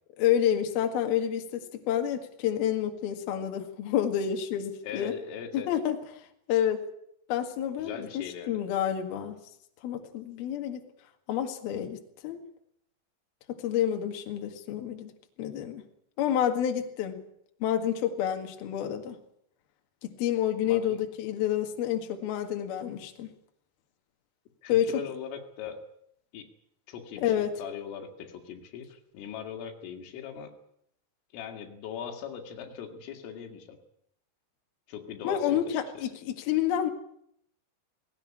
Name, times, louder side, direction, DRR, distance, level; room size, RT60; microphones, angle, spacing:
voice 1, 0.2-5.1 5.5-6.0 6.5-6.8 7.3-9.4 9.8-10.9 11.3-12.4 13.5-15.1 15.4-15.8 16.2-17.2 17.6-19.2 20.0-23.3 24.7-25.0 27.2-27.5 35.2-36.9, left 10 dB, 60° left, 5 dB, 3.4 m, -29 dB
voice 2, 4.8-5.7 7.8-8.5 20.6-21.0 24.6-25.8 26.3-26.5 26.9-30.5 31.3-33.8 34.9-35.6 36.0-36.1, left 8 dB, 85° left, 4 dB, 4.8 m, -40 dB
19.0 x 18.0 x 9.9 m, 0.73 s
omnidirectional pair, 5.6 m